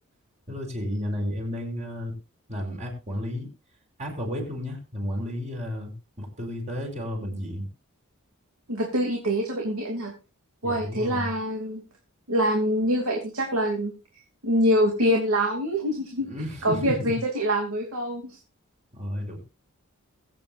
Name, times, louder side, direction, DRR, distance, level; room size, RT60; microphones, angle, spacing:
voice 1, 0.5-2.2 2.5-3.5 4.0-7.7 10.6-11.3 16.2-17.2 18.9-19.4, left 1 dB, 35° right, 1 dB, 4.8 m, -32 dB
voice 2, 8.7-10.1 10.6-11.8 12.3-13.9 14.4-16.3 16.6-18.4, equal, 85° right, 1 dB, 2.8 m, -25 dB
22.0 x 8.8 x 2.6 m, 0.30 s
head